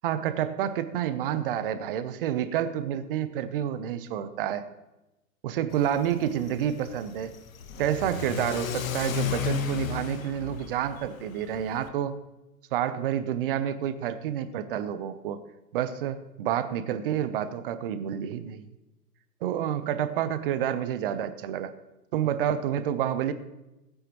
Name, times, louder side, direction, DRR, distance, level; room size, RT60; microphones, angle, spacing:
voice 1, 0.0-4.7 5.4-7.3 7.8-12.2 12.7-15.4 15.7-18.6 19.4-21.7 22.1-23.3, right 10 dB, 35° right, 12 dB, 0.7 m, -29 dB
Car / Accelerating revving vroom, 5.7-11.9, left 8 dB, 55° left, 1.2 m, -34 dB
16.0 x 9.2 x 3.0 m, 0.99 s
hypercardioid pair, 130°, 49 cm